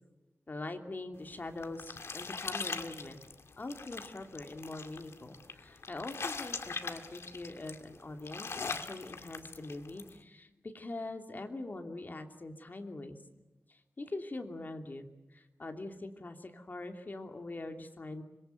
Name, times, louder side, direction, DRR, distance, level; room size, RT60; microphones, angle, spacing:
voice 1, 0.5-3.2 3.6-13.2 13.7-18.2, left 2 dB, 45° left, 5 dB, 2.9 m, -43 dB
sound 1, 1.2-10.1, left 4 dB, 80° left, 2.1 m, -42 dB
26.0 x 22.5 x 9.3 m, 1.0 s
wide cardioid pair, 105°, 4 cm